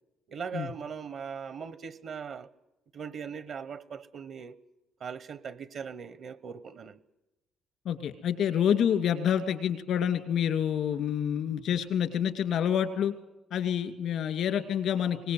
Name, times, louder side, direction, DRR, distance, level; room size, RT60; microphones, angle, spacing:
voice 1, 0.3-2.5 2.9-4.6 5.0-7.0, right 6 dB, 65° right, 0.9 m, -40 dB
voice 2, 7.8-13.1 13.5-15.3, left 9 dB, 75° left, 2.4 m, -28 dB
24.0 x 20.0 x 7.8 m
cardioid pair, 90°, 0 cm